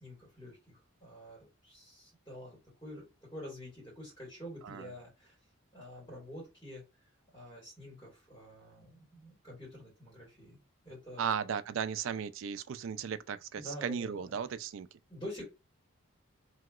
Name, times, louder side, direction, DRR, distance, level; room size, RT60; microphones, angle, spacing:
voice 1, 0.0-5.4 5.7-6.8 7.3-10.6 10.8-11.4 13.6-14.3 15.1-15.4, equal, 15° left, 1.9 m, -47 dB
voice 2, 11.2-14.9, right 7 dB, 60° right, 0.3 m, -36 dB
3.0 x 2.8 x 2.4 m
head